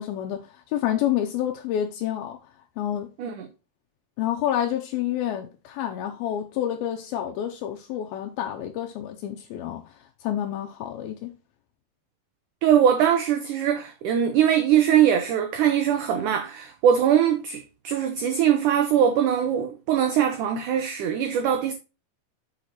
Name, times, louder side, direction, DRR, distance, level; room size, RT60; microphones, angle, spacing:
voice 1, 0.0-2.4 2.8-3.1 4.2-9.9 10.2-11.3, left 11 dB, 80° left, 2.4 m, -28 dB
voice 2, 12.6-21.7, right 9 dB, 90° right, 1.8 m, -22 dB
6.6 x 5.2 x 4.2 m
omnidirectional pair, 4.5 m